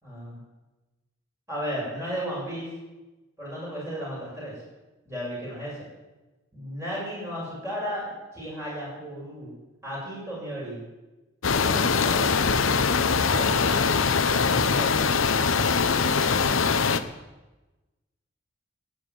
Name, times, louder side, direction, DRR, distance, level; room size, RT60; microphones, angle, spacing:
voice 1, 0.0-0.4 1.5-2.7 3.4-4.5 5.1-5.9 6.5-9.5 9.8-10.8 11.7-12.7 13.3-15.1, equal, 15° right, -6 dB, 7.0 m, -35 dB
sound 1, 11.4-17.0, left 5 dB, 80° left, 0.8 m, -22 dB
15.5 x 8.2 x 9.2 m, 1.1 s
head